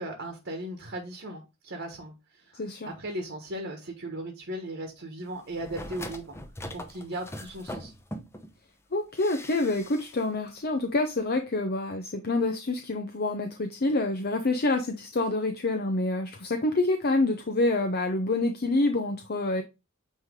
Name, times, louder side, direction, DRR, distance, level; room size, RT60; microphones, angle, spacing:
voice 1, 0.0-6.4 6.7-7.9, right 1 dB, 60° right, 1.4 m, -37 dB
voice 2, 2.5-2.9 8.9-19.6, left 2 dB, 50° left, 0.7 m, -27 dB
sound 1, 5.5-8.5 9.2-10.2 10.5-10.6, left 1 dB, 10° left, 0.8 m, -41 dB
9.4 x 3.2 x 3.6 m
head